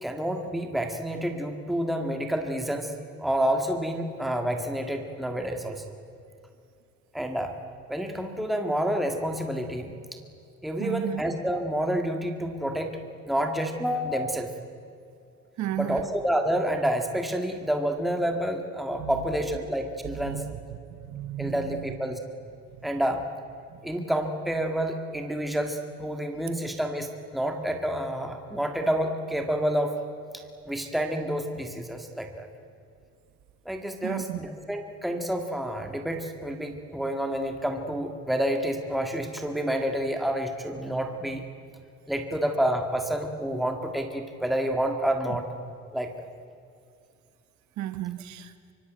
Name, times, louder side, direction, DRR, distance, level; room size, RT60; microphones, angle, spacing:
voice 1, 0.0-2.9 3.2-5.9 7.1-7.5 7.9-9.9 10.6-13.0 13.3-14.5 15.8-20.4 21.4-22.2 22.8-23.3 23.8-30.0 30.7-32.5 33.7-41.4 42.1-45.4 45.9-46.1, equal, ahead, 4 dB, 1.8 m, -29 dB
voice 2, 10.8-11.2 15.6-16.1 19.0-19.3 20.0-20.5 21.0-22.0 22.8-22.9 23.7-23.8 34.0-34.4 47.8-48.5, right 12 dB, 75° right, 10 dB, 1.5 m, -33 dB
24.5 x 24.5 x 9.1 m, 2.5 s
cardioid pair, 165°, 29 cm